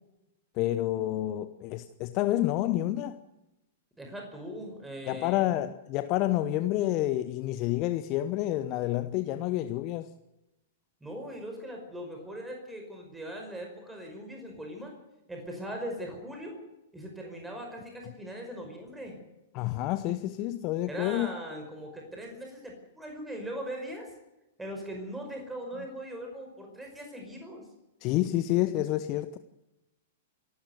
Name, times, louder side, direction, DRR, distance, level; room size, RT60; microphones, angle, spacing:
voice 1, 0.5-3.2 5.1-10.1 19.5-21.3 28.0-29.4, left 14 dB, 40° left, 1.0 m, -29 dB
voice 2, 4.0-5.4 11.0-14.9 15.3-16.6 16.9-19.2 20.9-24.1 24.6-27.7, equal, 5° right, 5.3 m, -40 dB
27.0 x 13.0 x 8.0 m
figure-of-eight pair, 105°, 0 cm